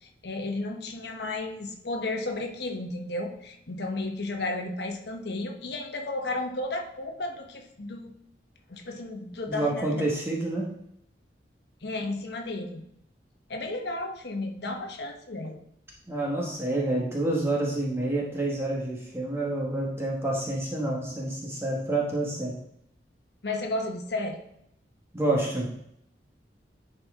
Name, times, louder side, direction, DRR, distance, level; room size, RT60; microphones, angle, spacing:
voice 1, 0.0-8.1 8.7-10.0 11.8-12.8 13.5-15.6 23.4-24.4, left 2 dB, 65° left, 3 dB, 1.0 m, -33 dB
voice 2, 9.5-10.6 16.1-22.5 25.1-25.7, right 2 dB, 15° right, -3 dB, 1.2 m, -28 dB
10.0 x 4.3 x 3.6 m, 0.75 s
head